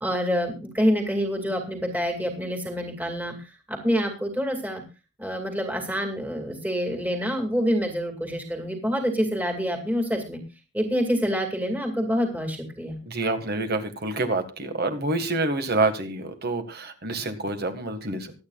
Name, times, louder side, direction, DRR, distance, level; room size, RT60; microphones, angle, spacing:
voice 1, 0.0-4.8 5.2-10.4 10.7-13.0, equal, 10° right, 3 dB, 2.2 m, -27 dB
voice 2, 13.1-18.3, right 2 dB, 45° right, 7 dB, 1.7 m, -27 dB
24.0 x 9.1 x 2.4 m, 0.29 s
head